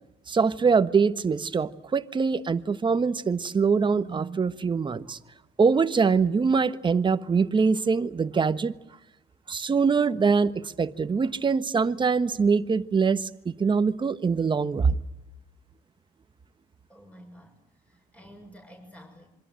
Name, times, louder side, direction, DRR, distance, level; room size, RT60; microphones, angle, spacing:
voice 1, 0.3-5.2 5.6-8.7 9.5-14.9, right 5 dB, 30° right, 1.4 m, -23 dB
voice 2, 16.9-19.3, equal, 10° left, 6.8 m, -50 dB
27.0 x 24.5 x 7.8 m
cardioid pair, 110°, 17 cm